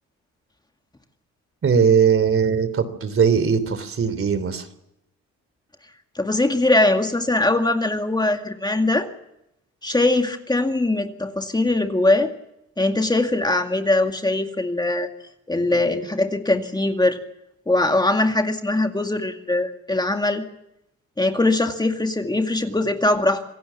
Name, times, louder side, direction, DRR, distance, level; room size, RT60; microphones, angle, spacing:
voice 1, 1.6-4.7, right 6 dB, 45° right, 13 dB, 3.2 m, -19 dB
voice 2, 6.2-9.1 9.8-12.3 12.8-15.1 15.5-17.2 17.7-20.4 21.2-23.4, left 2 dB, 15° left, 5 dB, 2.2 m, -21 dB
27.0 x 17.0 x 7.2 m, 0.83 s
cardioid pair, 90°, 30 cm